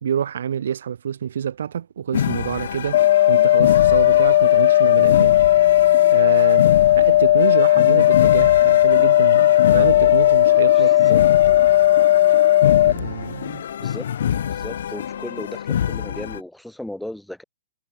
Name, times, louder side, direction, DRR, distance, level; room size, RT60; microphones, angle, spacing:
voice 1, 0.0-3.0 3.3-5.4 6.1-6.7 6.9-11.0 12.8-13.6, right 8 dB, 75° right, 0.8 m, -27 dB
sound 1, 2.1-16.4, left 9 dB, 65° left, 1.2 m, -27 dB
sound 2, 2.9-12.9, left 14 dB, 45° left, 1.0 m, -15 dB
voice 2, 10.7-11.2 13.8-14.1 14.4-17.4, left 1 dB, ahead, 7.2 m, -36 dB
hypercardioid pair, 170°, 0 cm